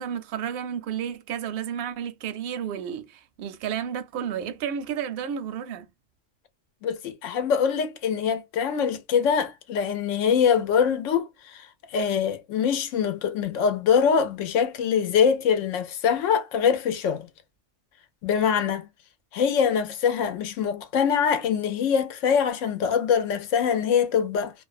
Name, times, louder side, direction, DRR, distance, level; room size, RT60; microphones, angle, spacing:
voice 1, 0.0-5.9, right 8 dB, 60° right, 0.7 m, -32 dB
voice 2, 6.8-11.7 11.9-17.3 18.2-18.8 19.3-24.5, left 7 dB, 85° left, 0.9 m, -23 dB
2.5 x 2.1 x 2.4 m
omnidirectional pair, 1.3 m